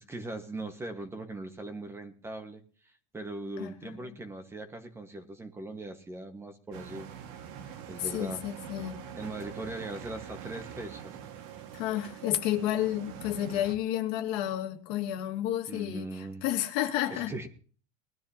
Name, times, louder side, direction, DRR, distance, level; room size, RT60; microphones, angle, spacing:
voice 1, 0.0-2.6 3.1-7.1 7.9-8.4 9.1-11.2 15.7-16.4 17.1-17.5, right 2 dB, 15° right, 8 dB, 1.5 m, -40 dB
voice 2, 3.6-4.2 8.0-9.0 11.7-17.3, left 12 dB, 70° left, 5 dB, 2.0 m, -31 dB
sound 1, 6.7-13.8, right 8 dB, 70° right, 1.9 m, -44 dB
20.5 x 12.5 x 2.9 m, 0.42 s
supercardioid pair, 130°, 16 cm